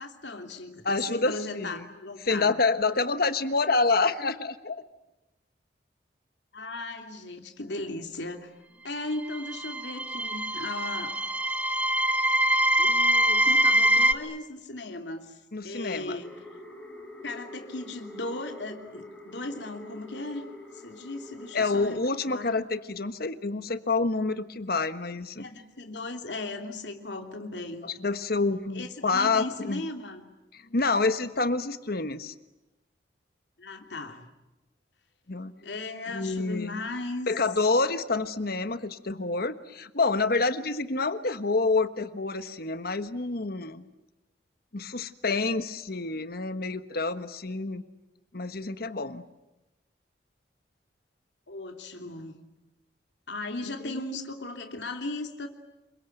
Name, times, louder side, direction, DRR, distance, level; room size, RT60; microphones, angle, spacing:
voice 1, 0.0-2.6 6.5-8.5 8.8-11.2 12.8-15.4 15.6-16.4 17.2-20.5 20.7-22.0 22.3-22.5 25.4-27.9 28.7-30.3 33.6-34.3 35.6-37.3 51.5-52.4 53.3-55.5, left 2 dB, 80° left, 5 dB, 3.0 m, -37 dB
voice 2, 0.8-1.8 2.2-4.8 15.5-16.2 21.5-25.5 27.8-29.8 30.5-32.3 35.3-35.5 36.1-36.8 37.3-43.9 44.7-47.8 48.3-49.2 53.7-54.0, left 3 dB, 60° left, 11 dB, 1.4 m, -28 dB
sound 1, 9.2-14.1, right 1 dB, 10° right, 1.1 m, -24 dB
sound 2, 16.2-22.2, left 1 dB, 5° left, 4.9 m, -46 dB
27.5 x 23.5 x 9.2 m, 0.98 s
head